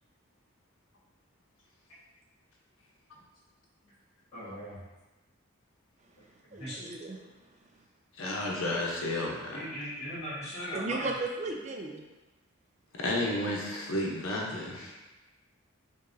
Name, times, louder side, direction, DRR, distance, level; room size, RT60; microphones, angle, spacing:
voice 1, 4.3-4.8 6.5-6.8 9.5-11.1, equal, 30° left, -15 dB, 1.4 m, -39 dB
voice 2, 6.5-7.2 10.7-12.0, right 3 dB, 35° right, 2 dB, 0.4 m, -35 dB
voice 3, 8.1-9.6 13.0-14.9, left 1 dB, 85° left, -2 dB, 0.8 m, -32 dB
5.3 x 2.6 x 2.6 m, 1.1 s
head